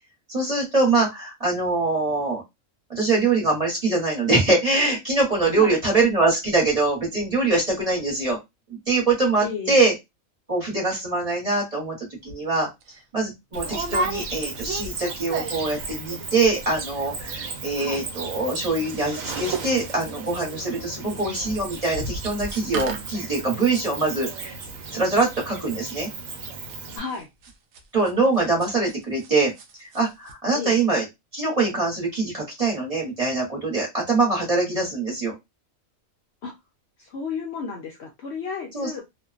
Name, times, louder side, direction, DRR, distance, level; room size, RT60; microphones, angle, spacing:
voice 1, 0.3-2.4 2.9-8.4 8.7-9.9 10.5-12.7 13.1-24.6 24.9-26.1 27.9-29.5 29.9-31.0 31.3-35.4 38.7-39.0, right 3 dB, 30° right, -3 dB, 1.0 m, -23 dB
voice 2, 9.4-9.8 17.8-18.1 21.0-21.2 27.0-27.3 30.5-30.8 36.4-36.6 37.0-39.0, left 5 dB, 65° left, 1 dB, 0.8 m, -33 dB
sound 1, 12.3-12.4 12.8-13.0 13.6-15.8 16.1-16.5 16.7-16.8 17.0-17.4 17.7-29.3 29.6-30.0 30.3-30.4, right 2 dB, 65° right, 0.8 m, -34 dB
Cricket, 13.5-27.0, right 4 dB, 85° right, 1.0 m, -35 dB
2.5 x 2.1 x 2.4 m, 0.19 s
omnidirectional pair, 1.4 m